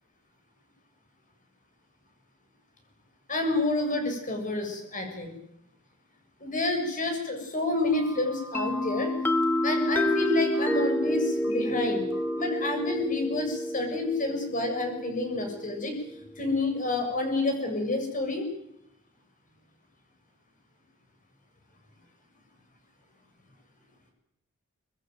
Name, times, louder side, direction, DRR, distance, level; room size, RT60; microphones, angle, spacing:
voice 1, 3.3-5.4 6.4-9.1 9.6-12.0 12.4-15.9 16.4-18.5, left 2 dB, 40° left, 4 dB, 7.3 m, -29 dB
Telephone, 7.9-10.8 11.4-11.7 12.1-12.4, left 1 dB, 85° left, 6.8 m, -46 dB
sound 1, 8.5-16.2, left 1 dB, 10° left, 1.1 m, -29 dB
25.0 x 21.0 x 9.5 m, 0.78 s
head